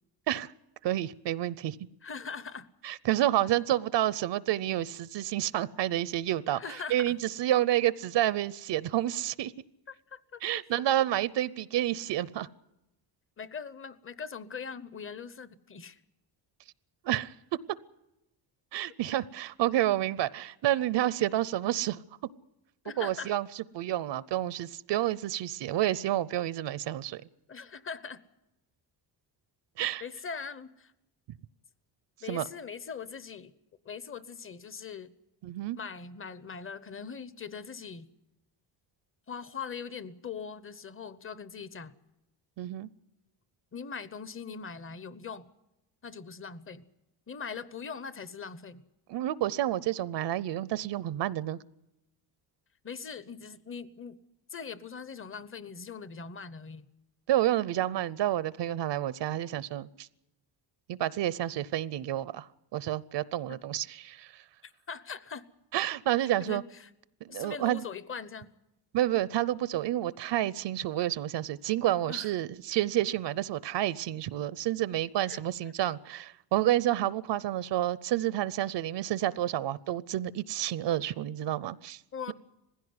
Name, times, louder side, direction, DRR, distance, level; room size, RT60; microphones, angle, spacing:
voice 1, 0.8-1.8 2.8-9.5 10.4-12.5 17.0-17.3 18.7-22.0 23.0-27.2 29.8-30.0 32.3-32.5 35.4-35.8 42.6-42.9 49.1-51.6 57.3-60.1 60.9-64.4 65.7-66.6 67.2-67.8 68.9-82.0, right 13 dB, 70° right, 0.7 m, -29 dB
voice 2, 2.0-2.7 6.5-7.2 9.9-10.4 13.4-16.0 18.9-19.0 22.8-23.3 27.5-28.2 30.0-30.9 32.2-33.5 33.8-35.1 35.8-38.1 39.3-41.9 43.7-45.5 46.0-46.8 47.3-48.8 52.8-54.2 54.5-56.8 64.6-65.4 66.4-66.9 67.3-68.5 72.0-72.3 75.3-75.4 82.1-82.3, left 6 dB, 30° left, 0.9 m, -41 dB
19.5 x 16.0 x 9.6 m
cardioid pair, 140°, 44 cm